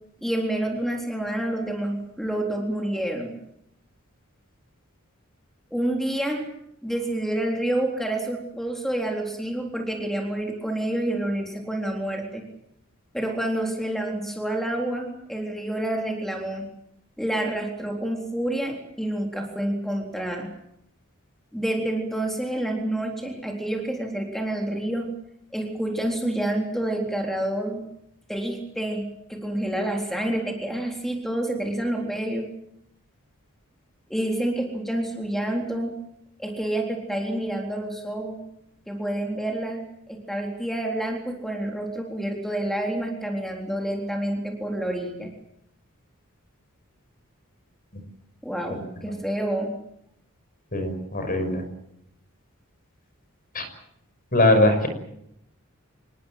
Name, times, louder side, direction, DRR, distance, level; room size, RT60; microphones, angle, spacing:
voice 1, 0.2-3.3 5.7-6.4 6.8-12.4 13.1-16.7 17.2-20.5 21.5-25.1 25.5-27.8 28.3-29.0 29.3-32.5 34.1-35.9 36.4-38.4 38.9-39.8 40.1-45.3 48.4-49.7, right 1 dB, ahead, 1 dB, 3.8 m, -28 dB
voice 2, 50.7-51.6 53.5-53.6 54.3-54.9, left 1 dB, 40° left, 8 dB, 5.8 m, -21 dB
27.0 x 20.5 x 7.8 m, 0.77 s
head